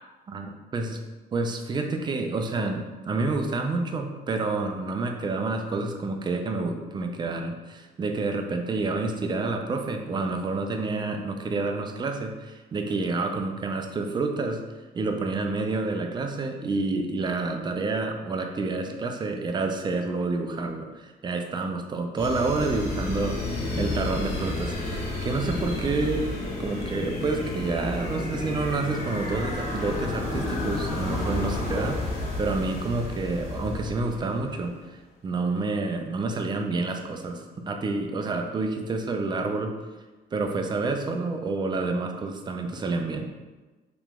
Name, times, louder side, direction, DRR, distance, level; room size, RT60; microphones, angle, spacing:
voice 1, 0.3-1.0 1.3-14.6 14.9-26.3 26.6-34.7 35.2-39.7 40.3-43.3, right 3 dB, 25° right, 4 dB, 0.4 m, -29 dB
sound 1, 22.2-34.5, left 2 dB, 40° left, 1.2 m, -31 dB
3.0 x 2.9 x 3.5 m, 1.2 s
cardioid pair, 110°, 17 cm